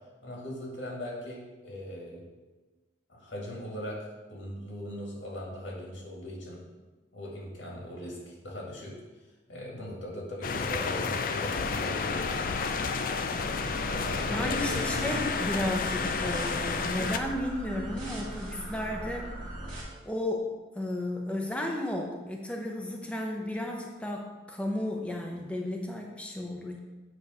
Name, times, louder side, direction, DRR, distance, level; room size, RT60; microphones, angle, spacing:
voice 1, 0.2-2.2 3.1-6.6 7.1-9.0 9.5-12.5 13.8-15.2, left 1 dB, 80° left, -3 dB, 1.9 m, -40 dB
sound 1, 10.4-17.2, left 4 dB, 45° left, 0.4 m, -31 dB
sound 2, 13.4-19.8, right 1 dB, 25° right, 1.7 m, -40 dB
voice 2, 14.3-19.3 20.0-20.5 20.7-26.8, left 1 dB, 5° left, 1 dB, 0.7 m, -33 dB
8.6 x 3.2 x 5.5 m, 1.2 s
head